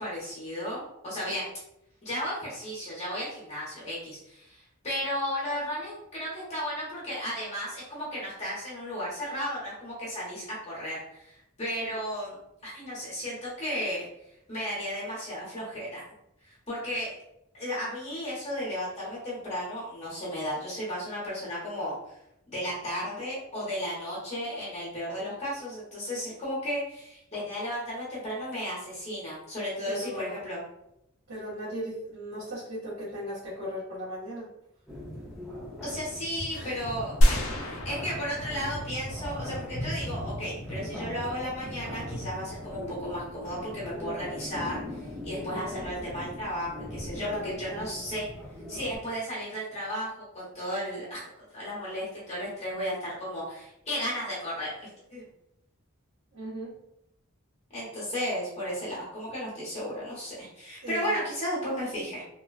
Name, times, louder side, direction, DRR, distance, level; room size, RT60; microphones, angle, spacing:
voice 1, 0.0-1.5 2.0-11.3 11.6-12.4 12.6-14.1 14.5-16.0 16.4-17.2 17.5-21.9 22.5-30.6 35.8-48.2 48.7-50.1 50.3-51.2 51.5-55.3 57.7-62.2, equal, 30° left, -7 dB, 1.0 m, -34 dB
voice 2, 29.9-30.4 31.3-34.5 36.5-36.8 47.1-47.9 56.3-56.7 60.8-61.2, equal, 80° right, -13 dB, 1.2 m, -37 dB
sound 1, 34.9-49.0, left 1 dB, ahead, 0.5 m, -39 dB
sound 2, 37.2-39.5, equal, 80° left, 0.5 m, -26 dB
3.0 x 2.2 x 2.3 m, 0.81 s
head